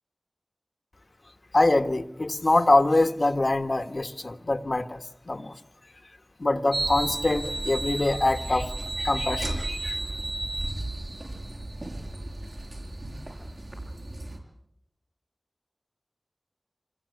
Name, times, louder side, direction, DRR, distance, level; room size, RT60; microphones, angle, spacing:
voice 1, 1.5-5.5 6.4-10.0, left 2 dB, 75° left, 7 dB, 1.4 m, -24 dB
sound 1, 6.7-14.4, right 2 dB, 80° right, 5.8 m, -33 dB
27.0 x 22.0 x 8.4 m, 0.80 s
wide cardioid pair, 45°, 0 cm